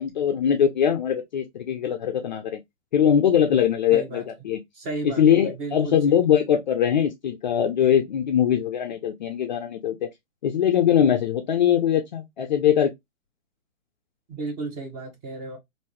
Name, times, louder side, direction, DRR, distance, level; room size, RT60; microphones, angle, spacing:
voice 1, 0.0-2.6 2.9-4.6 5.0-10.1 10.4-12.9, left 9 dB, 35° left, 0.5 m, -21 dB
voice 2, 3.9-4.2 4.8-6.0 14.3-15.6, right 3 dB, 20° right, 1.0 m, -33 dB
3.6 x 2.6 x 2.9 m
hypercardioid pair, 130°, 40 cm